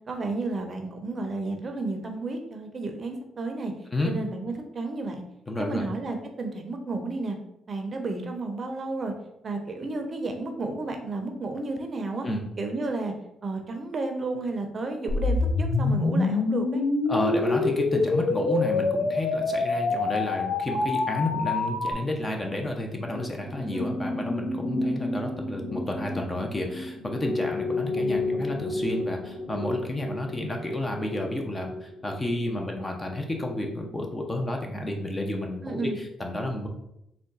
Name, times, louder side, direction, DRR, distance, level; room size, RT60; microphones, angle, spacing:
voice 1, 0.1-3.7 4.0-5.2 5.6-7.4 7.7-9.1 9.4-12.3 12.6-13.1 13.4-16.8 23.6-23.9 35.6-36.0, right 3 dB, 40° right, 4 dB, 0.6 m, -32 dB
voice 2, 5.5-5.8 12.2-12.5 17.1-36.7, left 1 dB, 20° left, 2 dB, 0.7 m, -31 dB
sound 1, 15.1-21.9, left 3 dB, 70° left, 0.5 m, -25 dB
sound 2, 23.1-33.4 33.7-33.9, left 2 dB, 55° left, 0.9 m, -32 dB
3.7 x 2.2 x 3.8 m, 0.80 s
cardioid pair, 90°, 0 cm